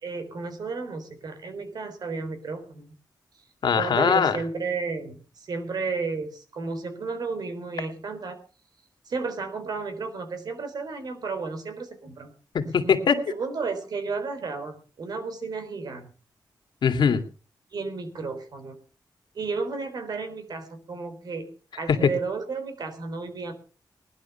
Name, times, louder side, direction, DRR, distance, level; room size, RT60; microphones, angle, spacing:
voice 1, 0.0-2.9 3.8-8.4 9.1-12.3 13.3-16.1 17.7-18.8 19.3-21.5 21.8-23.5, right 4 dB, 60° right, 8 dB, 4.0 m, -33 dB
voice 2, 3.6-4.4 12.5-13.3 16.8-17.3 21.9-22.1, left 6 dB, 85° left, 6 dB, 2.4 m, -21 dB
19.5 x 11.5 x 5.7 m, 0.39 s
wide cardioid pair, 165°, 8 cm